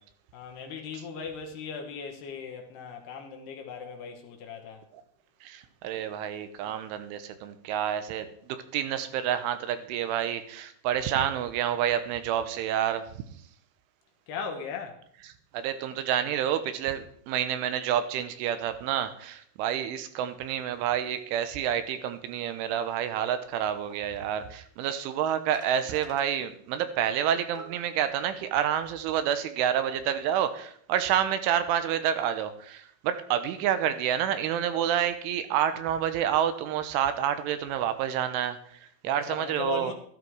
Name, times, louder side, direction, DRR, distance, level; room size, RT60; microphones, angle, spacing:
voice 1, 0.3-4.8 14.3-15.0 39.0-39.9, left 6 dB, 70° left, 3.1 m, -38 dB
voice 2, 5.4-13.1 15.5-39.9, right 10 dB, 85° right, 3.5 m, -29 dB
sound 1, 23.4-23.5 23.9-24.0 25.1-25.2 25.5-26.3 27.2-27.3 27.5-28.2, right 2 dB, 60° right, 1.1 m, -47 dB
13.5 x 13.0 x 4.7 m
omnidirectional pair, 5.5 m